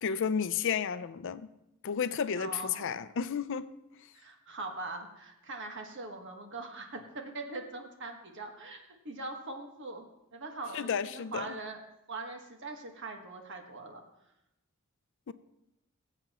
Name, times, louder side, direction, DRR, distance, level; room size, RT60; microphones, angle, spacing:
voice 1, 0.0-1.5 1.8-3.7 10.7-11.5 15.3-15.4, left 7 dB, 60° left, 13 dB, 0.5 m, -32 dB
voice 2, 2.3-3.0 4.1-10.0 10.3-11.8 12.1-14.0, right 2 dB, 55° right, 3 dB, 1.5 m, -42 dB
20.5 x 8.0 x 3.0 m, 0.88 s
head